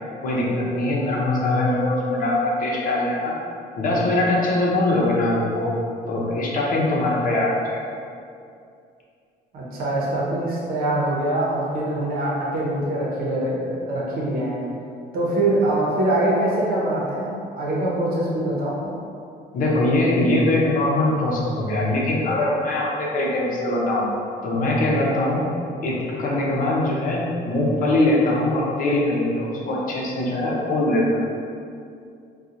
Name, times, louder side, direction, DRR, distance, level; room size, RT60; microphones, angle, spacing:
voice 1, 0.2-3.3 3.8-5.7 6.1-7.8 19.5-24.1 24.4-25.4 25.8-31.0, left 1 dB, 55° left, -4 dB, 0.8 m, -22 dB
voice 2, 9.5-14.6 15.1-18.9, right 1 dB, 60° right, -5 dB, 0.9 m, -23 dB
4.1 x 2.4 x 2.5 m, 2.4 s
cardioid pair, 110°, 17 cm